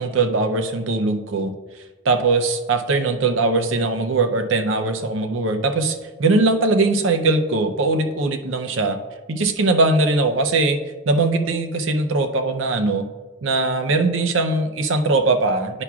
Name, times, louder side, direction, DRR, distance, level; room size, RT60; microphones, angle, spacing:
voice 1, 0.0-1.5 2.0-9.0 9.3-10.8 11.1-13.1 13.4-15.8, right 3 dB, 85° right, 7 dB, 0.6 m, -20 dB
9.7 x 5.8 x 2.4 m, 1.3 s
head